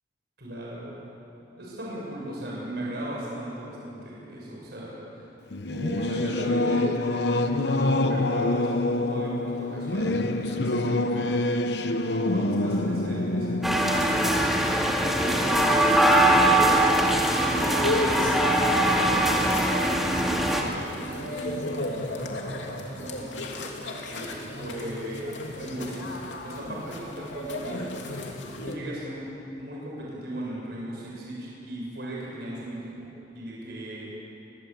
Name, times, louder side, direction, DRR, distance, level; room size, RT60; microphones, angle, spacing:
voice 1, 0.4-1.0 1.6-5.3 5.7-11.5 11.8-14.4 15.1-16.8 17.5-23.7 24.1-25.3 25.5-27.8 28.6-29.3 29.6-33.1 33.3-34.1, right 1 dB, 60° right, -4 dB, 7.0 m, -37 dB
Singing / Musical instrument, 5.5-15.6, left 2 dB, 65° left, 1.0 m, -26 dB
sound 1, 13.6-20.6, right 1 dB, ahead, 2.2 m, -22 dB
sound 2, 17.4-28.8, left 1 dB, 85° left, 2.8 m, -34 dB
24.0 x 21.0 x 8.4 m, 2.9 s
head